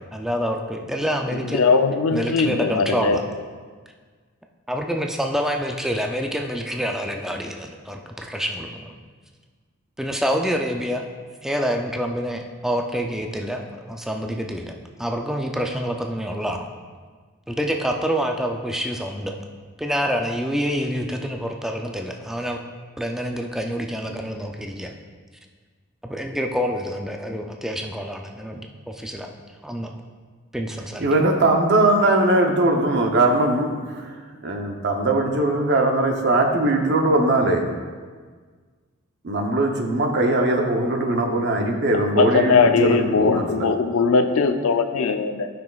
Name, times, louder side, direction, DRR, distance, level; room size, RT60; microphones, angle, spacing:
voice 1, 0.0-1.7 2.1-3.2 4.7-8.9 10.0-11.1 11.4-14.7 15.0-16.7 17.5-19.4 19.8-22.6 23.0-24.9 26.0-29.3 29.6-30.0 30.5-31.1, equal, ahead, 2 dB, 0.3 m, -27 dB
voice 2, 1.3-3.2 42.2-45.5, left 4 dB, 75° left, 8 dB, 0.5 m, -20 dB
voice 3, 31.0-37.6 39.2-43.7, right 2 dB, 55° right, 3 dB, 0.8 m, -20 dB
10.5 x 5.9 x 2.3 m, 1.5 s
head